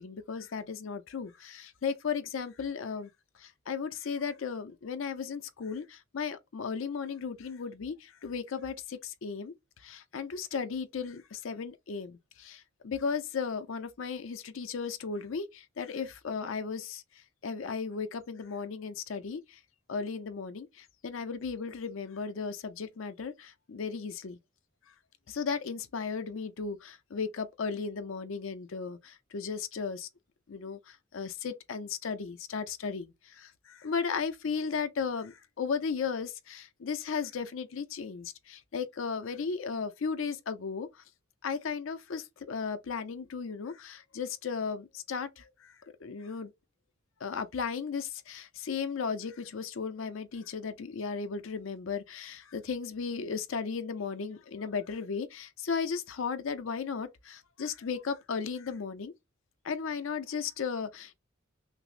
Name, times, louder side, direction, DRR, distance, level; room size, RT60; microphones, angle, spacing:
voice 1, 0.0-3.1 3.4-9.5 9.8-17.0 17.4-19.6 19.9-24.4 25.3-30.1 30.5-40.9 41.4-45.7 46.0-46.5 47.2-59.1 59.6-61.2, left 5 dB, 70° left, 0.5 m, -35 dB
5.8 x 2.0 x 2.4 m
head